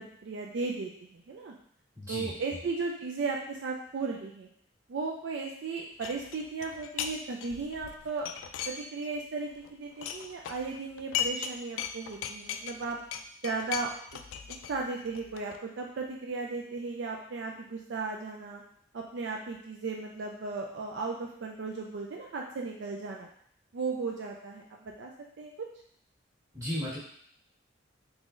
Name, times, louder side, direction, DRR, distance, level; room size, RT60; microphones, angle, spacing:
voice 1, 0.0-1.5 2.1-4.5 4.9-8.3 8.7-13.0 13.4-13.9 14.7-18.6 18.9-23.3 23.7-25.1 25.4-25.5, right 4 dB, 65° right, 0 dB, 0.4 m, -36 dB
voice 2, 1.9-2.3 26.5-27.0, left 1 dB, 15° right, -8 dB, 1.4 m, -34 dB
sound 1, 6.0-7.2 7.4-9.2 9.5-11.5 11.8-15.6, left 8 dB, 90° left, 0.3 m, -37 dB
3.8 x 3.0 x 2.5 m, 0.64 s
head